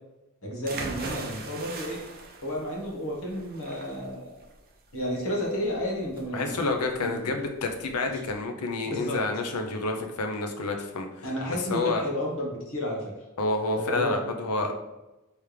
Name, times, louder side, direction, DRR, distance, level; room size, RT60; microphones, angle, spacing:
voice 1, 0.4-2.0 2.4-4.3 4.9-6.6 7.0-7.3 8.1-8.2 8.9-9.2 11.2-13.1 13.7-14.2, equal, 65° left, -2 dB, 1.4 m, -31 dB
sound 1, 0.7-8.3, right 3 dB, 45° right, 0.6 m, -40 dB
voice 2, 6.3-11.3 11.7-12.0 13.4-14.7, left 3 dB, 90° left, 5 dB, 0.6 m, -29 dB
3.4 x 3.2 x 4.8 m, 1.0 s
head